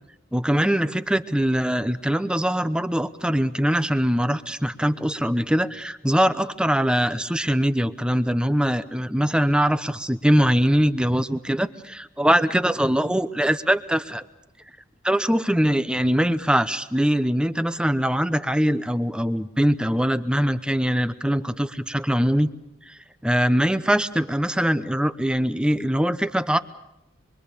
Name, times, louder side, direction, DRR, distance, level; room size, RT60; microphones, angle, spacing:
voice 1, 0.3-14.2 15.0-22.5 22.9-26.6, equal, 5° right, 12 dB, 0.8 m, -22 dB
26.5 x 23.5 x 6.8 m, 0.85 s
head